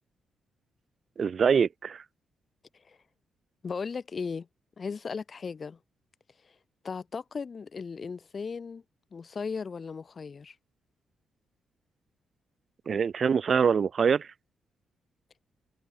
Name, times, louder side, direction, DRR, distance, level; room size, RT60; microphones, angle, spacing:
voice 1, 1.2-2.0 12.9-14.3, right 6 dB, 35° right, 2.3 m, -24 dB
voice 2, 3.6-4.5 4.8-5.8 6.4-6.5 6.8-8.8 9.1-10.5, left 5 dB, 30° left, 4.7 m, -36 dB
wide cardioid pair, 180°, 0 cm